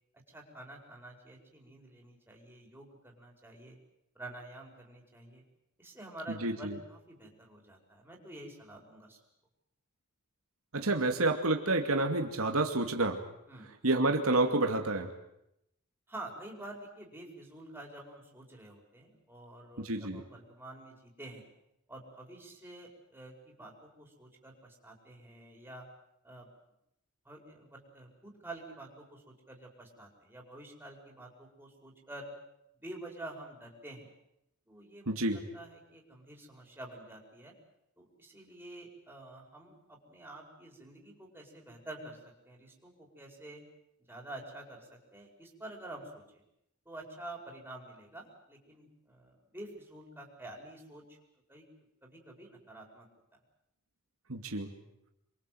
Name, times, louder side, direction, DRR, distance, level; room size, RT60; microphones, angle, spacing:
voice 1, 0.3-3.8 4.2-5.4 5.8-9.2 13.5-13.7 16.1-21.4 21.9-25.9 26.2-26.5 27.3-32.3 32.8-34.1 34.7-37.5 38.0-43.6 44.1-46.4 46.9-51.0 51.5-51.6 52.0-53.1, right 2 dB, 10° right, -1 dB, 5.5 m, -48 dB
voice 2, 6.4-6.8 10.7-13.2 13.8-15.1 19.8-20.2 35.1-35.4 54.3-54.7, right 2 dB, 80° right, 4 dB, 2.5 m, -29 dB
27.0 x 23.0 x 7.9 m, 0.82 s
head